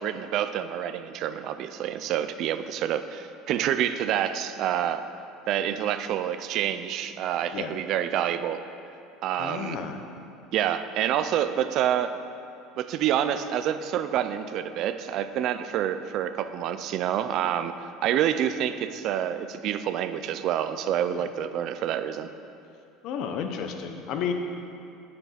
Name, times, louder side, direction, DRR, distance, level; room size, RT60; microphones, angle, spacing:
voice 1, 0.0-5.1 5.5-8.6 9.2-9.8 10.5-12.1 12.8-22.3, right 10 dB, 45° right, 11 dB, 0.4 m, -27 dB
voice 2, 9.4-10.0 21.1-21.3 23.0-24.3, left 7 dB, 50° left, 5 dB, 0.8 m, -32 dB
9.7 x 6.7 x 5.7 m, 2.7 s
cardioid pair, 165°, 0 cm